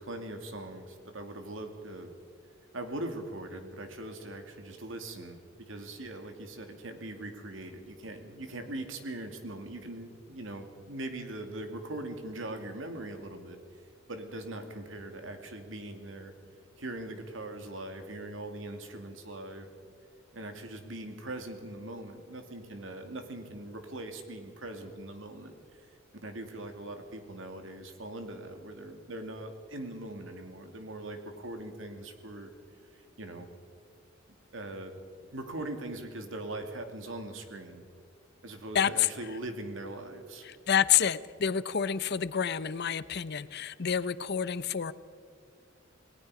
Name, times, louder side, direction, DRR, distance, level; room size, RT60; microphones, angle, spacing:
voice 1, 0.0-2.1 2.7-13.6 14.1-16.3 16.8-19.7 20.3-26.0 26.2-32.5 32.9-33.5 34.5-34.9 35.3-37.8 38.4-40.5, right 1 dB, 75° right, 6 dB, 2.5 m, -41 dB
voice 2, 38.7-39.1 40.4-44.9, left 8 dB, 55° left, 16 dB, 0.7 m, -28 dB
28.0 x 19.0 x 4.9 m, 2.1 s
head